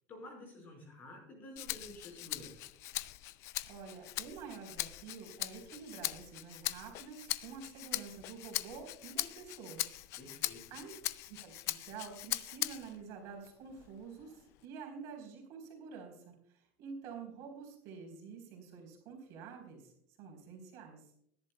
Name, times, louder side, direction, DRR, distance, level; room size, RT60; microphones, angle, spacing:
voice 1, 0.1-2.7 10.2-10.7, left 1 dB, 25° left, 1 dB, 5.1 m, -51 dB
Rattle (instrument), 1.6-13.0 13.5-14.6, left 16 dB, 40° left, 0.4 m, -40 dB
voice 2, 3.7-10.0 10.7-10.9 11.3-19.9 20.2-21.0, right 5 dB, 50° right, 1 dB, 3.9 m, -48 dB
20.5 x 11.0 x 2.3 m, 0.70 s
cardioid pair, 175°, 7 cm